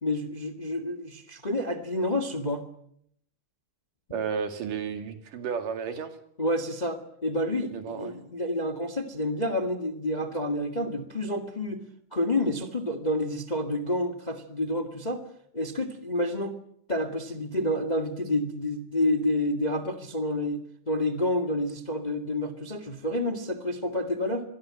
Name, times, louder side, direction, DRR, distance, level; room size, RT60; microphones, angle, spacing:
voice 1, 0.0-2.6 6.4-11.8 12.1-15.2 15.5-16.6 16.9-20.6 20.9-24.4, left 1 dB, 20° left, 7 dB, 1.4 m, -29 dB
voice 2, 4.1-6.2 7.7-8.2, right 6 dB, 75° right, 7 dB, 3.9 m, -32 dB
27.5 x 22.5 x 7.7 m, 0.70 s
omnidirectional pair, 3.8 m